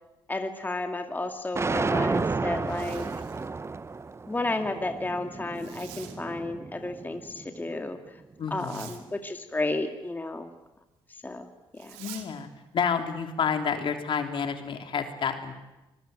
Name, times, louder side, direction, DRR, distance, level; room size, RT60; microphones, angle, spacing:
voice 1, 0.3-3.1 4.3-8.0 8.5-10.5 11.2-11.5 11.7-12.0, left 2 dB, 15° left, 5 dB, 2.3 m, -32 dB
sound 1, 1.5-7.7, right 4 dB, 25° right, 0.9 m, -32 dB
Zipper (clothing), 2.5-3.5 5.5-6.2 8.5-9.0 11.7-12.3, right 12 dB, 90° right, 2.4 m, -47 dB
voice 2, 8.4-8.9 12.0-12.5 12.7-15.6, left 6 dB, 55° left, 5 dB, 3.4 m, -29 dB
25.0 x 21.0 x 9.1 m, 1.0 s
supercardioid pair, 65°, 10 cm